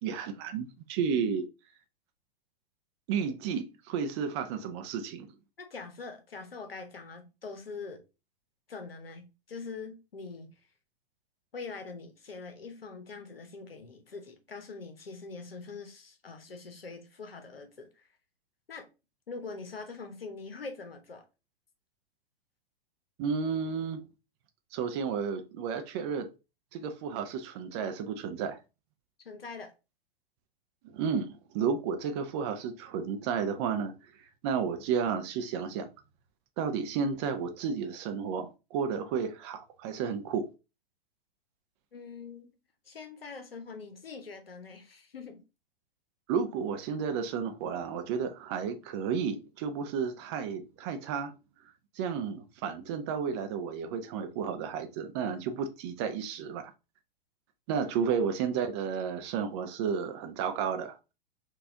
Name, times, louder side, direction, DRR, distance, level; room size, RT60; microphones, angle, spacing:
voice 1, 0.0-1.5 3.1-5.3 23.2-24.0 24.7-26.3 26.7-28.6 30.8-33.9 34.4-35.9 36.6-40.5 46.3-51.3 52.0-56.7 57.7-61.0, right 6 dB, 30° right, 0.4 m, -32 dB
voice 2, 5.6-8.0 8.7-10.5 11.5-18.1 18.7-18.9 19.3-21.2 29.2-29.7 41.9-42.5 42.9-45.4, left 4 dB, 80° left, 0.8 m, -43 dB
3.9 x 2.4 x 2.6 m
figure-of-eight pair, 105°, 29 cm